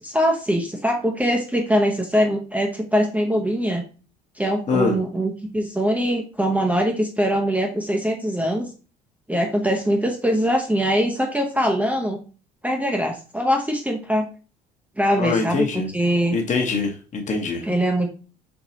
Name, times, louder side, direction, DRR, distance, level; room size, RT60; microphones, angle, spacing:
voice 1, 0.0-3.8 4.4-8.7 9.3-12.2 12.6-14.2 15.0-16.4 17.6-18.1, equal, 5° right, 2 dB, 0.8 m, -22 dB
voice 2, 15.2-15.9 16.3-17.6, left 4 dB, 35° left, 3 dB, 1.1 m, -23 dB
4.6 x 3.8 x 2.8 m, 0.35 s
figure-of-eight pair, 55°, 21 cm